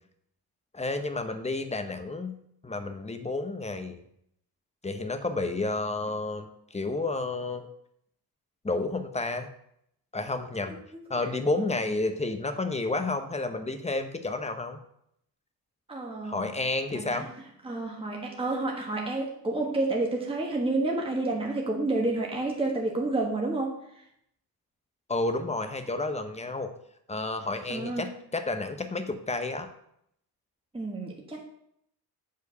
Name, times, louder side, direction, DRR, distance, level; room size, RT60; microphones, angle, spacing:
voice 1, 0.7-2.4 2.6-4.0 4.8-7.7 8.6-9.5 10.1-10.8 11.1-14.8 16.2-17.3 25.1-26.7 27.1-29.7, left 2 dB, 15° left, 8 dB, 0.8 m, -31 dB
voice 2, 10.7-11.2 15.9-16.6 16.9-17.3 17.6-24.0 27.7-28.1 30.7-31.4, right 2 dB, 15° right, -1 dB, 1.4 m, -30 dB
8.3 x 4.5 x 6.6 m, 0.73 s
wide cardioid pair, 130°, 39 cm